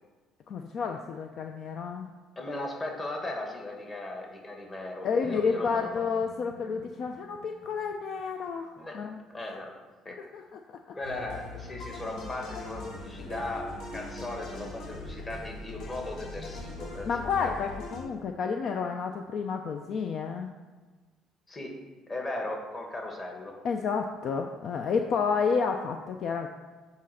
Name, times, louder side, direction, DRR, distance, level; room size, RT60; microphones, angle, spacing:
voice 1, 0.5-2.1 5.0-9.2 10.2-10.6 10.9-11.0 17.1-20.5 23.6-26.5, left 5 dB, 50° left, 4 dB, 0.6 m, -30 dB
voice 2, 2.3-6.0 8.8-9.0 9.3-9.7 10.0-10.2 10.9-17.1 21.5-21.7 22.1-23.5, left 2 dB, 25° left, 0 dB, 1.7 m, -37 dB
sound 1, 5.2-9.2 13.2-15.7, right 1 dB, 5° right, 0.8 m, -49 dB
sound 2, 11.0-18.0, left 2 dB, 70° left, 2.5 m, -41 dB
8.2 x 4.3 x 6.3 m, 1.3 s
cardioid pair, 135°, 0 cm